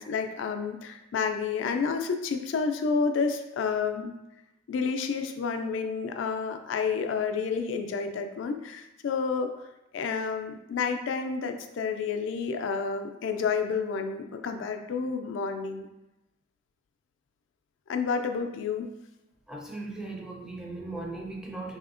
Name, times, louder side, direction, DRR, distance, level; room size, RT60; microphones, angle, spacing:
voice 1, 0.0-4.1 4.7-9.6 9.9-15.9 17.9-18.9, left 5 dB, 70° left, 6 dB, 0.3 m, -30 dB
voice 2, 19.5-21.8, right 2 dB, 5° right, -1 dB, 0.4 m, -38 dB
3.3 x 2.7 x 2.4 m, 0.94 s
head